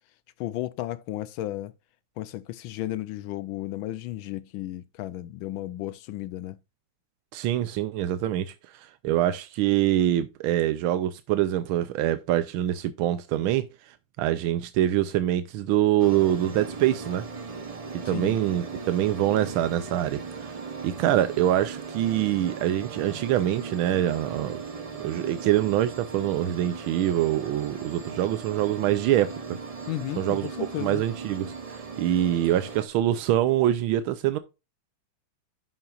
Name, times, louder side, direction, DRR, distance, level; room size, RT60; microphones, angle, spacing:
voice 1, 0.4-1.7 2.2-6.6 18.0-18.4 29.9-31.0, left 14 dB, 80° left, 1.3 m, -34 dB
voice 2, 7.3-17.2 18.1-24.6 25.0-29.6 30.2-30.5 30.8-34.4, right 12 dB, 90° right, 1.5 m, -25 dB
sound 1, 16.0-32.9, right 4 dB, 60° right, 0.3 m, -38 dB
11.0 x 5.9 x 2.4 m
omnidirectional pair, 2.2 m